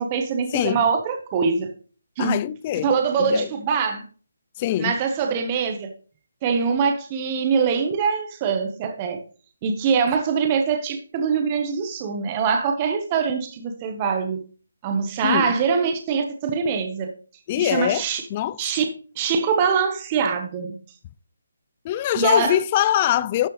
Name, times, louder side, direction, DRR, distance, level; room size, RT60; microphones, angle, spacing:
voice 1, 0.0-1.7 2.2-2.4 2.8-4.0 4.8-5.9 6.4-9.2 9.6-14.4 14.8-17.1 17.6-18.2 18.6-18.9 19.2-20.8 22.1-22.6, right 6 dB, 20° right, 1.1 m, -23 dB
voice 2, 0.5-0.8 2.2-2.9 3.2-3.5 4.6-5.0 15.2-15.5 17.5-18.1 18.3-18.6 21.8-23.5, left 12 dB, 25° left, 0.3 m, -23 dB
12.5 x 6.7 x 3.2 m
hypercardioid pair, 165°, 0 cm